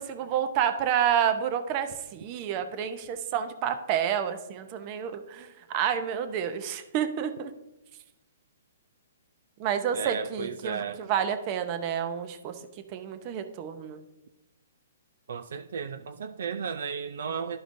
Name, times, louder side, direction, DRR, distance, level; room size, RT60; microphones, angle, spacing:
voice 1, 0.0-7.5 9.6-12.5 12.9-14.0, right 9 dB, 35° right, 0.7 m, -29 dB
voice 2, 9.9-11.1 15.3-17.6, right 6 dB, 70° right, 0.4 m, -34 dB
12.0 x 4.9 x 2.6 m
hypercardioid pair, 145°, 0 cm